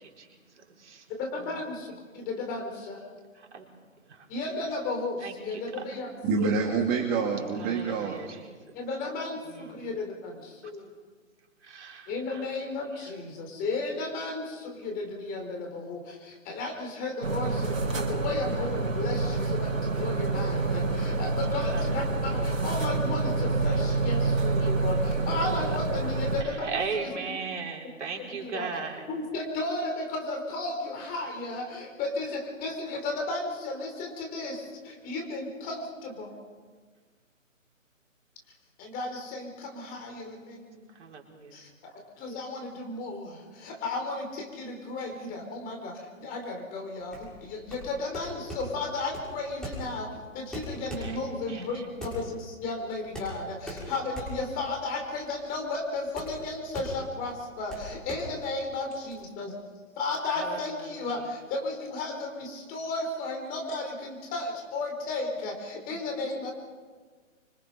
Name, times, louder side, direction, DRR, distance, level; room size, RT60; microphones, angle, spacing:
voice 1, 1.2-3.0 4.3-6.1 6.4-6.6 8.7-10.9 12.1-27.4 28.2-28.7 29.1-36.4 38.8-40.8 41.5-59.5 60.0-66.5, left 2 dB, 20° left, 4.3 m, -34 dB
voice 2, 6.2-8.2, right 5 dB, 20° right, 2.4 m, -27 dB
voice 3, 7.6-8.4 11.7-12.1 26.7-29.0 41.0-41.5 51.0-51.1 51.5-51.6 60.4-60.6, right 5 dB, 60° right, 4.7 m, -35 dB
sound 1, 17.2-26.4, right 3 dB, 80° right, 4.1 m, -27 dB
sound 2, 47.1-59.2, equal, ahead, 6.9 m, -41 dB
25.5 x 25.5 x 5.7 m
hypercardioid pair, 140°, 40 cm